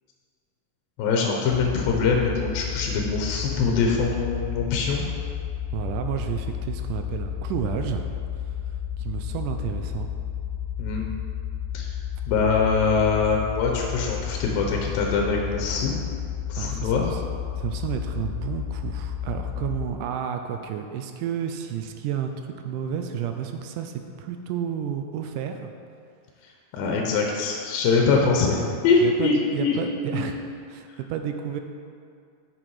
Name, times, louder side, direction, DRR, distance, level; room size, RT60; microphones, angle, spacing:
voice 1, 1.0-5.1 10.8-11.0 11.7-12.0 12.3-15.9 16.5-17.0 26.7-29.8 30.1-30.3, left 4 dB, 80° left, 0 dB, 2.5 m, -23 dB
sound 1, 1.5-19.9, left 9 dB, 65° left, 1.8 m, -32 dB
voice 2, 5.7-8.0 9.0-10.1 16.6-17.2 17.6-25.7 29.0-30.4 30.7-31.6, right 9 dB, 80° right, 6 dB, 1.9 m, -31 dB
8.8 x 6.0 x 4.7 m, 2.3 s
omnidirectional pair, 4.1 m